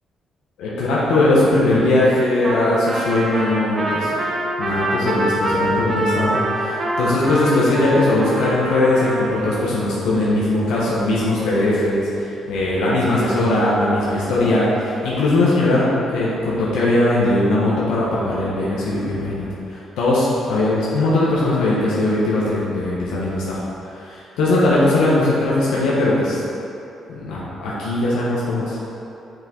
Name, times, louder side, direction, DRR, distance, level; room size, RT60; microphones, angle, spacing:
voice 1, 0.6-4.1 4.6-23.6 23.9-26.4 27.1-28.8, left 2 dB, 90° left, -7 dB, 1.4 m, -19 dB
Trumpet, 2.4-9.5, right 1 dB, 35° right, 1.2 m, -25 dB
6.1 x 5.8 x 4.6 m, 2.8 s
cardioid pair, 90°, 0 cm